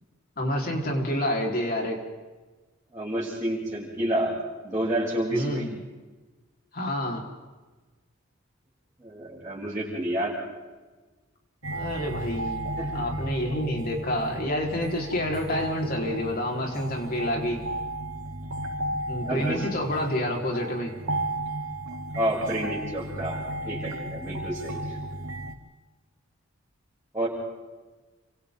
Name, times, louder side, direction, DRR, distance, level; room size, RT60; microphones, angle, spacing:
voice 1, 0.4-2.0 5.3-5.8 6.7-7.2 11.7-17.6 19.1-20.9, equal, 45° left, 0 dB, 4.4 m, -28 dB
voice 2, 2.9-4.3 4.6-5.7 9.0-10.3 12.8-13.0 19.2-19.6 22.1-25.0 27.1-27.3, right 1 dB, 15° right, -11 dB, 7.7 m, -29 dB
sound 1, 11.6-25.5, right 1 dB, 90° right, 2.6 m, -34 dB
30.0 x 26.0 x 3.9 m, 1.3 s
head